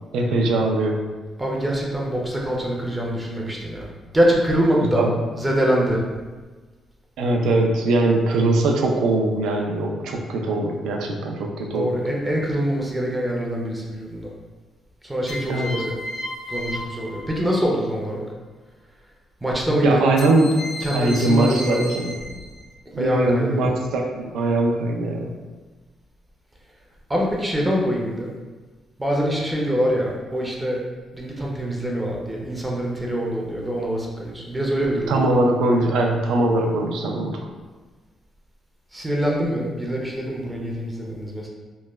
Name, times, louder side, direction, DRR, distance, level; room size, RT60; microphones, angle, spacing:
voice 1, 0.1-1.0 5.0-5.1 7.2-11.9 15.5-15.9 19.8-20.6 20.9-22.1 23.0-25.4 35.1-37.5, right 2 dB, 90° right, 1 dB, 0.3 m, -21 dB
voice 2, 1.4-5.1 5.4-6.0 11.7-14.3 15.0-16.0 16.5-18.2 19.4-20.2 20.8-21.9 22.2-22.4 23.0-23.6 27.1-28.3 29.0-30.8 31.1-35.3 38.9-41.5, equal, 10° right, -2 dB, 0.4 m, -24 dB
sound 1, 12.2-12.7 15.3-17.9 20.2-22.7, left 1 dB, 55° left, 0.3 m, -35 dB
3.0 x 2.1 x 2.2 m, 1.3 s
cardioid pair, 135°, 0 cm